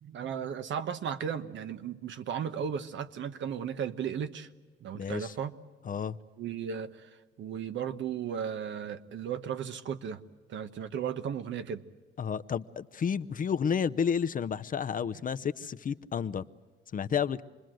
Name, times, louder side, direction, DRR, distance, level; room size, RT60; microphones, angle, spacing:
voice 1, 0.0-4.5 4.8-5.5 6.4-7.1 7.4-10.2 10.5-11.8, right 8 dB, 70° right, 10 dB, 1.2 m, -35 dB
voice 2, 4.9-5.3 5.8-6.2 12.2-16.4 16.9-17.4, left 7 dB, 45° left, 12 dB, 0.7 m, -31 dB
27.0 x 20.5 x 7.8 m, 1.4 s
cardioid pair, 90°, 20 cm